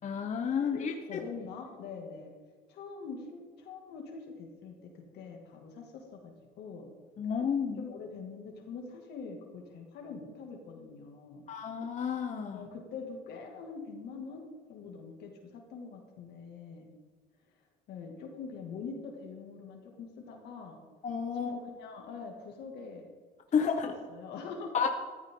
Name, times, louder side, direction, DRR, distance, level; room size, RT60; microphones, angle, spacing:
voice 1, 0.0-1.2 7.2-7.9 11.5-12.6 21.0-21.5 23.5-23.9 24.7-24.9, left 6 dB, 45° left, 3 dB, 1.0 m, -31 dB
voice 2, 0.6-2.3 2.7-6.9 7.8-11.5 12.5-14.4 14.7-16.9 17.9-20.8 21.3-23.1 23.5-24.7, left 5 dB, 75° left, 1 dB, 2.4 m, -44 dB
14.0 x 13.0 x 3.9 m, 1.4 s
cardioid pair, 110°, 17 cm